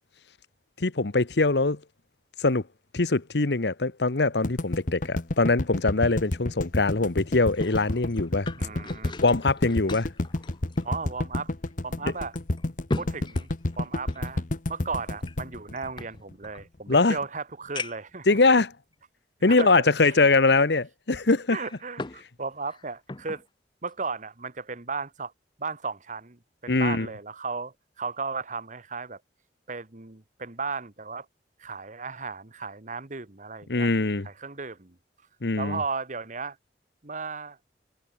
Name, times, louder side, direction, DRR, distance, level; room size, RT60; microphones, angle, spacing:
voice 1, 0.8-1.8 2.4-2.6 2.9-8.5 9.2-10.1 12.0-12.1 16.9-17.2 18.3-18.7 19.4-21.6 26.7-27.1 33.7-34.3 35.4-35.8, left 3 dB, 70° left, 1.2 m, -22 dB
sound 1, 4.4-16.6, left 1 dB, 50° left, 1.1 m, -30 dB
sound 2, 7.3-11.3 11.7-11.8 12.3-14.3 15.2-16.6 17.2-17.3 17.7-18.2 18.9-19.0 21.3-22.3 22.6-23.4 23.9-24.1, left 3 dB, 25° left, 0.8 m, -39 dB
voice 2, 8.5-9.1 10.8-11.5 11.8-12.3 12.9-13.5 13.8-14.4 14.7-18.4 19.5-20.3 21.5-23.4 23.8-25.3 25.6-29.2 29.7-31.3 31.6-33.9 34.2-35.0 35.6-36.6 37.0-37.6, right 4 dB, 45° right, 1.6 m, -35 dB
head